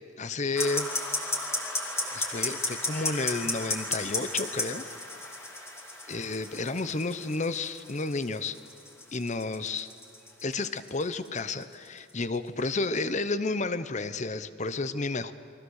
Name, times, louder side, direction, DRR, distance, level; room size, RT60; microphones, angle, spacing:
voice 1, 0.2-0.9 2.1-4.9 6.1-8.6 9.1-9.9 10.4-15.3, left 3 dB, 35° left, 13 dB, 0.8 m, -31 dB
sound 1, 0.5-12.6, left 2 dB, 10° left, 2.5 m, -34 dB
30.0 x 23.0 x 6.5 m, 2.6 s
head